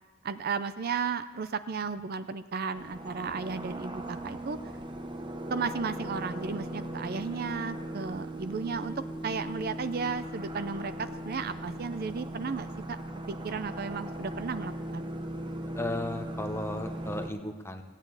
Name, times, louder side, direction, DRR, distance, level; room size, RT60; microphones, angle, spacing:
voice 1, 0.2-4.6 5.5-13.0 13.3-15.1, right 5 dB, 45° right, 12 dB, 0.4 m, -34 dB
sound 1, 2.7-17.3, right 1 dB, 20° right, 0.9 m, -38 dB
voice 2, 15.8-17.8, left 1 dB, 10° left, 5 dB, 0.8 m, -35 dB
16.5 x 9.0 x 8.0 m, 1.4 s
head